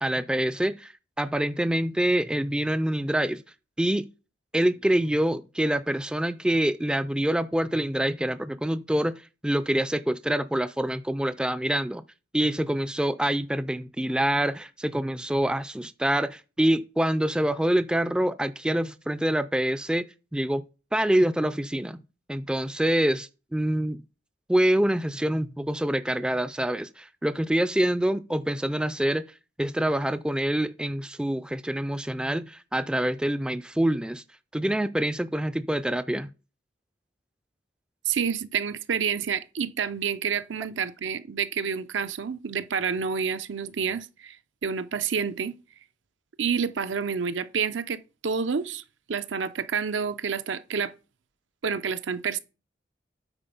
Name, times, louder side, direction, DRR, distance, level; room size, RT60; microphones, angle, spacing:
voice 1, 0.0-3.4 3.8-4.1 4.5-12.0 12.3-20.6 20.9-22.0 22.3-24.0 24.5-29.2 29.6-34.2 34.5-36.3, right 1 dB, 5° right, 0.3 m, -26 dB
voice 2, 38.1-44.4 44.6-45.5 46.4-48.8 49.1-50.9 51.6-52.4, right 6 dB, 80° right, 0.6 m, -28 dB
9.0 x 4.2 x 5.4 m
head